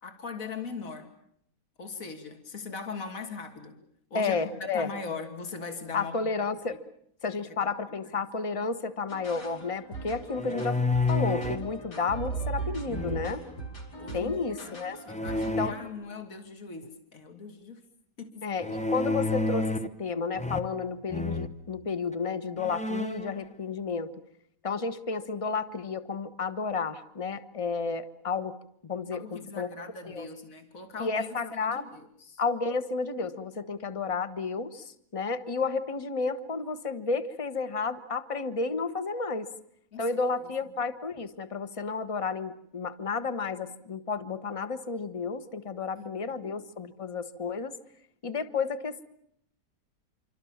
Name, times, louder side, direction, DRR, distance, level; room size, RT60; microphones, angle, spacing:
voice 1, 0.0-1.1 1.8-3.8 4.1-6.2 6.7-6.8 7.6-8.0 14.0-17.8 18.2-18.5 29.1-32.4 39.9-40.2 45.9-46.5, left 5 dB, 50° left, 5 dB, 3.1 m, -40 dB
voice 2, 4.1-4.9 5.9-6.8 7.2-10.8 11.1-13.4 14.1-15.0 15.6-15.7 18.4-19.7 20.0-24.1 24.6-28.6 28.8-29.7 30.0-30.3 31.0-31.9 32.4-39.5 40.0-47.8 48.2-49.0, left 4 dB, 20° left, 11 dB, 1.3 m, -31 dB
sound 1, 9.1-15.9, right 4 dB, 75° left, 5.2 m, -39 dB
sound 2, 10.4-11.7 12.9-13.6 15.1-15.7 18.6-20.0 20.4-20.8 21.1-21.5 22.1-22.2 22.6-23.3, left 2 dB, 5° left, 0.7 m, -30 dB
27.0 x 25.5 x 7.3 m, 0.70 s
omnidirectional pair, 1.8 m